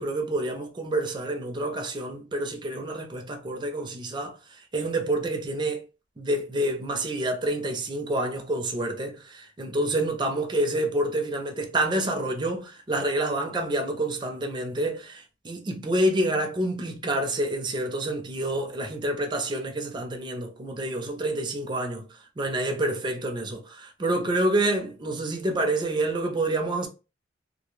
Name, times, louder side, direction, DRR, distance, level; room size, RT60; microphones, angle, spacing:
voice 1, 0.0-4.4 4.7-5.8 6.2-22.0 22.4-26.9, right 1 dB, 25° right, 0.4 m, -28 dB
2.0 x 2.0 x 3.1 m
head